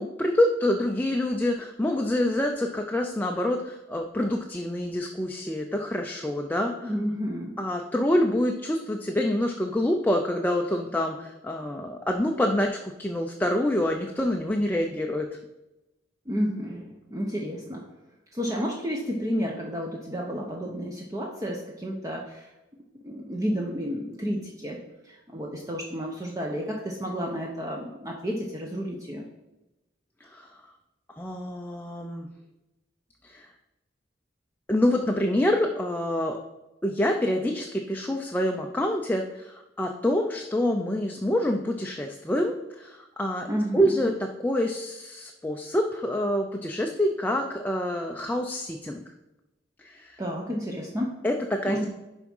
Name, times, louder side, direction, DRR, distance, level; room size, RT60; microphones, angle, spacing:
voice 1, 0.0-6.9 7.6-15.3 30.2-30.6 31.2-32.3 33.2-33.5 34.7-36.4 36.8-43.5 43.7-49.0 49.8-50.2 51.2-51.9, left 1 dB, 10° left, 2 dB, 0.5 m, -26 dB
voice 2, 6.8-7.6 16.3-17.8 18.3-22.5 23.0-24.8 25.0-29.3 43.5-44.1 50.2-51.2 51.6-51.9, equal, 20° right, -1 dB, 0.9 m, -31 dB
10.5 x 3.6 x 5.4 m, 0.99 s
head